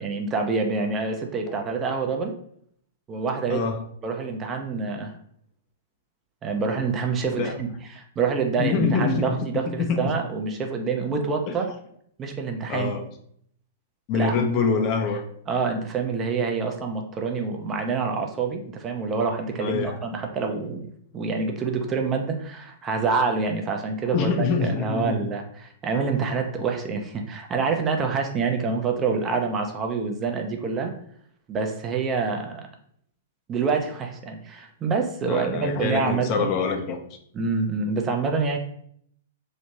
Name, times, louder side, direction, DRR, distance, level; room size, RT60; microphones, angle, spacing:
voice 1, 0.0-2.3 3.1-3.7 4.0-5.1 6.4-11.7 12.2-12.9 14.1-14.3 15.5-30.9 31.5-32.7 33.5-36.5 37.3-38.6, right 4 dB, 25° right, 3 dB, 0.5 m, -27 dB
voice 2, 3.5-3.8 7.4-7.5 8.6-10.0 11.5-11.6 12.7-13.0 14.1-15.2 19.6-20.0 24.1-25.2 35.3-37.0, left 4 dB, 35° left, 5 dB, 0.4 m, -25 dB
3.0 x 2.1 x 2.8 m, 0.65 s
figure-of-eight pair, 110°, 0 cm